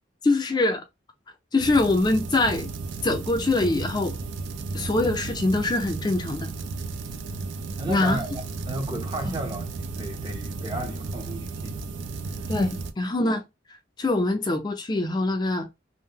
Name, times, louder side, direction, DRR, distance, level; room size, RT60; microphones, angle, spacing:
voice 1, 0.2-0.8 1.5-2.7 3.0-4.2 4.7-6.5 7.9-8.2 9.2-9.3 12.5-13.4 14.0-15.7, left 2 dB, 25° left, 0.3 m, -23 dB
sound 1, 1.6-12.9, right 4 dB, 90° right, 0.4 m, -34 dB
voice 2, 7.8-11.8 12.1-12.5, right 1 dB, 25° right, 0.6 m, -34 dB
2.7 x 2.0 x 3.5 m
head